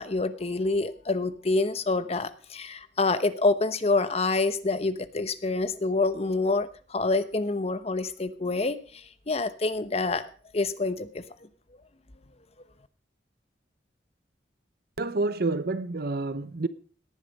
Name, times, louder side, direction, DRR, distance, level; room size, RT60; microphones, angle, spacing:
voice 1, 0.0-10.3 10.5-11.2, left 3 dB, 35° left, 0.9 m, -27 dB
voice 2, 15.0-16.7, right 3 dB, 60° right, 0.9 m, -28 dB
18.0 x 10.5 x 5.3 m
head